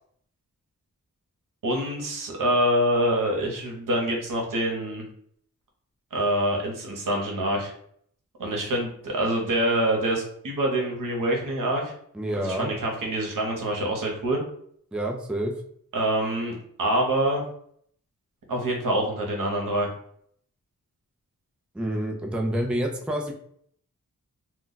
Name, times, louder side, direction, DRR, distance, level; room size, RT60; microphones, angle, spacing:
voice 1, 1.6-5.0 6.1-7.7 8.4-11.9 12.4-14.4 15.9-17.4 18.5-19.9, right 1 dB, 85° right, 0 dB, 0.8 m, -25 dB
voice 2, 12.1-12.7 14.9-15.5 21.7-23.3, right 1 dB, 5° right, 2 dB, 0.3 m, -28 dB
2.3 x 2.2 x 3.8 m, 0.65 s
wide cardioid pair, 110°, 32 cm